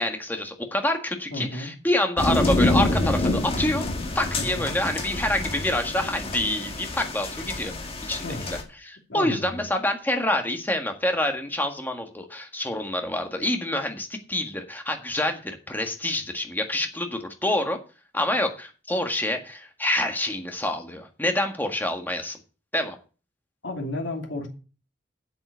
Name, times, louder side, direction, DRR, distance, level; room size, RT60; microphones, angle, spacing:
voice 1, 0.0-3.8 4.1-7.7 8.1-17.8 18.1-22.4 22.7-23.0, left 1 dB, 10° left, 5 dB, 1.6 m, -27 dB
voice 2, 1.3-1.7 4.3-4.7 8.2-8.6 9.1-9.7 23.6-24.5, left 2 dB, 80° left, 2 dB, 2.7 m, -33 dB
sound 1, 2.2-8.6, left 2 dB, 30° left, 1.9 m, -27 dB
7.9 x 7.8 x 6.8 m, 0.35 s
head